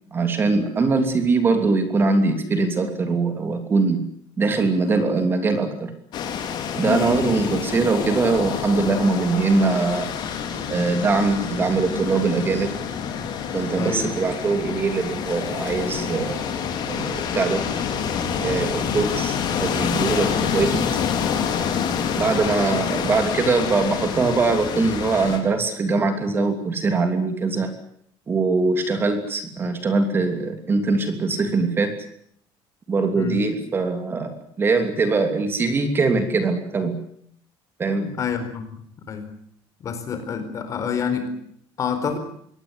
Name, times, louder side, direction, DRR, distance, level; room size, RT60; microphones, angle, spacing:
voice 1, 0.1-4.0 4.4-5.9 6.7-10.1 10.7-12.7 13.5-16.5 16.9-17.6 18.4-20.9 22.2-27.7 28.3-31.9 32.9-34.3 34.6-37.0 37.8-38.2, right 3 dB, 25° right, 7 dB, 2.9 m, -22 dB
sound 1, 6.1-25.4, left 7 dB, 50° left, 4.7 m, -27 dB
voice 2, 6.8-7.7 13.7-14.2 22.6-22.7 33.1-33.4 38.2-38.8 39.1-39.3 39.8-41.3 41.8-42.2, left 6 dB, 35° left, 9 dB, 4.3 m, -28 dB
24.0 x 18.5 x 9.8 m, 0.68 s
cardioid pair, 170°, 9 cm